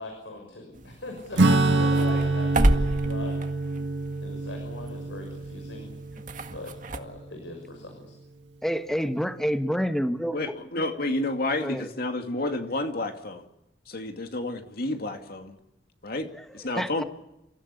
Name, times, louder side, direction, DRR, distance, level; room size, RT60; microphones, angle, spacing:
voice 1, 0.0-3.8 4.2-5.9 6.5-8.1, left 2 dB, 90° left, 3 dB, 6.2 m, -41 dB
sound 1, 0.7-7.0, right 1 dB, 45° right, 1.8 m, -31 dB
Acoustic guitar / Strum, 1.4-7.3, right 2 dB, 80° right, 1.9 m, -26 dB
voice 2, 8.6-10.4 11.6-11.8 16.8-17.0, equal, ahead, 9 dB, 1.3 m, -27 dB
voice 3, 10.3-13.5 13.9-15.6 16.0-16.3 16.5-17.0, left 2 dB, 55° left, 6 dB, 2.4 m, -30 dB
29.5 x 16.0 x 8.4 m, 0.85 s
head